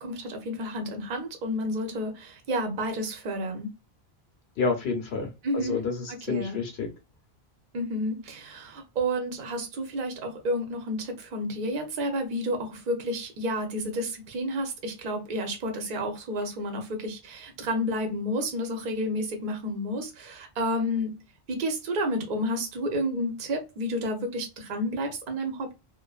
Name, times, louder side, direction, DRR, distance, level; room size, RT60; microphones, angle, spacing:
voice 1, 0.0-3.7 5.4-5.9 6.3-6.6 7.7-21.2 21.5-25.7, equal, 55° right, 0.8 m, -30 dB
voice 2, 4.6-6.9, left 4 dB, 75° left, 1.0 m, -29 dB
2.5 x 2.4 x 2.3 m
omnidirectional pair, 1.1 m